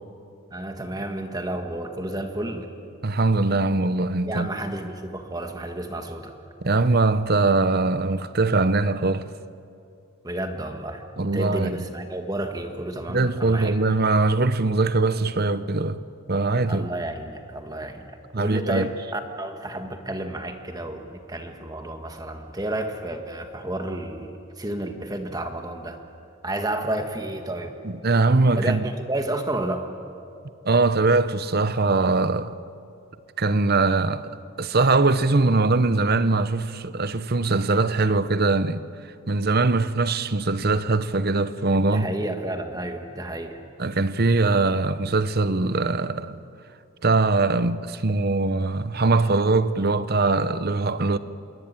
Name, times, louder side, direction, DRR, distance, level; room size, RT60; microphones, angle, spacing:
voice 1, 0.5-2.7 4.3-6.3 10.2-11.0 11.3-13.7 16.7-26.0 26.4-27.7 28.6-29.9 41.9-43.6, right 1 dB, 20° right, 1.7 m, -31 dB
voice 2, 3.0-4.5 6.6-9.3 11.2-11.7 13.1-16.0 16.3-16.9 18.3-18.9 27.8-28.9 30.6-32.6 33.4-38.8 39.3-42.1 43.8-46.4 47.0-51.2, right 3 dB, 45° right, 0.8 m, -22 dB
27.0 x 22.5 x 9.1 m
head